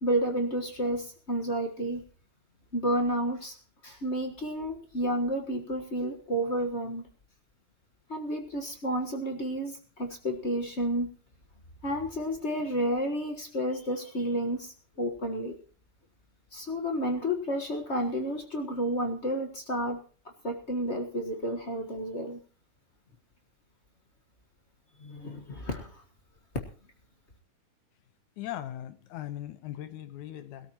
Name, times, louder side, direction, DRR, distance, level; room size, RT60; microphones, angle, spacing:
voice 1, 0.0-2.0 2.7-3.5 3.8-7.1 8.1-11.1 11.8-15.6 16.5-20.0 20.4-22.4 25.0-26.0, right 1 dB, 40° left, 0.9 m, -31 dB
voice 2, 28.4-30.7, left 12 dB, 75° left, 2.4 m, -39 dB
21.0 x 13.5 x 3.0 m
omnidirectional pair, 3.5 m